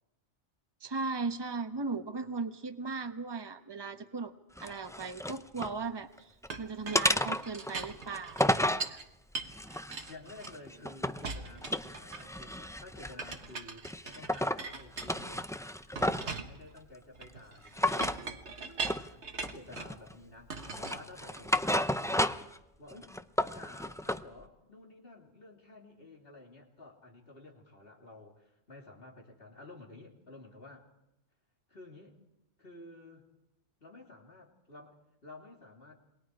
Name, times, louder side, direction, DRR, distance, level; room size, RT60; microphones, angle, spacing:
voice 1, 0.8-4.3 4.6-9.0, right 4 dB, 20° right, 7 dB, 1.1 m, -37 dB
sound 1, 4.6-5.8 6.2-6.5 6.9-8.9 9.5-11.3 11.6-13.4 13.8-14.6 15.0-16.4 17.7-18.2 18.8-19.1 19.4-20.1 20.6-22.6 22.9-24.2, left 1 dB, 5° left, 0.4 m, -32 dB
Chink clink, 6.5-9.0 9.3-10.8 11.2-12.5 13.2-15.5 16.0-20.0 20.5-21.6, right 4 dB, 75° right, 1.7 m, -41 dB
voice 2, 10.1-15.5 15.9-22.3 22.8-23.1 23.4-30.9 31.7-32.2 32.6-33.3 33.8-36.0, left 2 dB, 55° left, 0 dB, 3.5 m, -52 dB
28.0 x 22.0 x 4.8 m, 0.91 s
omnidirectional pair, 1.2 m